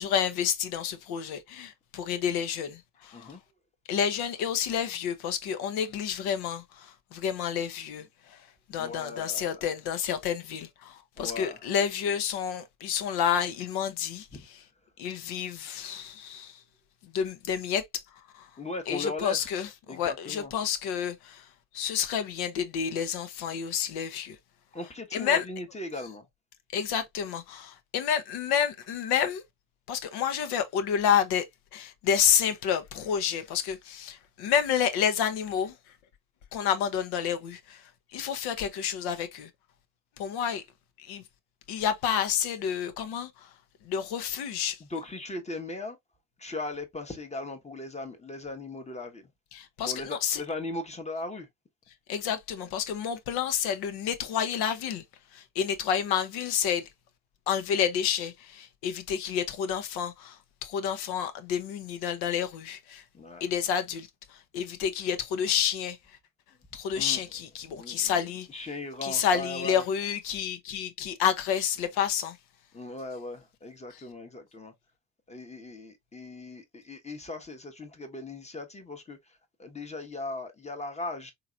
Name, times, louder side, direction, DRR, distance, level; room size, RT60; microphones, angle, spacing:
voice 1, 0.0-3.3 3.9-8.4 8.7-14.3 15.0-16.6 17.0-18.0 18.3-18.5 18.9-21.5 21.7-24.4 25.1-25.4 26.7-29.4 29.9-31.4 31.7-35.8 36.5-39.5 40.2-40.6 41.0-41.2 41.7-43.5 43.8-44.8 49.5-50.4 52.1-55.0 55.3-56.9 57.5-63.0 63.4-66.0 66.7-68.5 69.0-72.4, left 8 dB, 70° left, 0.9 m, -29 dB
voice 2, 3.1-3.4 8.8-9.6 11.2-11.7 14.3-14.4 18.6-19.5 19.9-20.5 24.7-26.3 44.8-46.0 46.4-49.3 49.8-51.5 63.1-63.4 66.9-67.2 67.7-69.8 71.0-71.1 72.7-74.7 75.3-81.3, left 2 dB, 15° left, 1.0 m, -38 dB
3.8 x 3.0 x 2.3 m
supercardioid pair, 70°, 40 cm